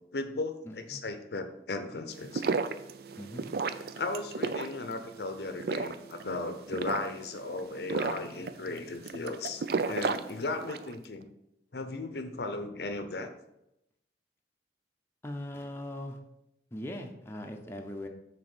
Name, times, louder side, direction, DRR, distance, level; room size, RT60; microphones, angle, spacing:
voice 1, 0.1-2.4 4.0-11.3 11.7-13.3, left 3 dB, 65° left, 8 dB, 0.7 m, -36 dB
voice 2, 0.6-1.0 3.2-3.5 15.2-16.2 16.7-18.1, left 1 dB, 15° left, 2 dB, 0.6 m, -40 dB
sound 1, 2.1-10.9, right 4 dB, 60° right, 0.4 m, -34 dB
6.4 x 4.1 x 6.1 m, 0.85 s
head